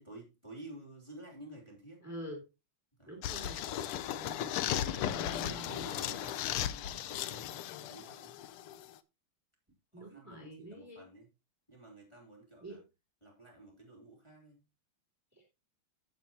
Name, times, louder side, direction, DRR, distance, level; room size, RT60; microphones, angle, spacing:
voice 1, 0.0-2.0 3.0-3.3 4.6-8.3 9.9-11.3 11.7-12.8 13.2-14.6, right 1 dB, 10° left, 3.3 m, -51 dB
voice 2, 2.0-2.4 3.1-3.7 4.1-4.6 5.1-6.4 9.9-11.0 12.6-12.8 15.3-15.4, equal, 5° right, 3.1 m, -47 dB
sound 1, 3.2-8.9, left 11 dB, 90° left, 1.6 m, -36 dB
14.5 x 7.3 x 2.8 m
omnidirectional pair, 2.4 m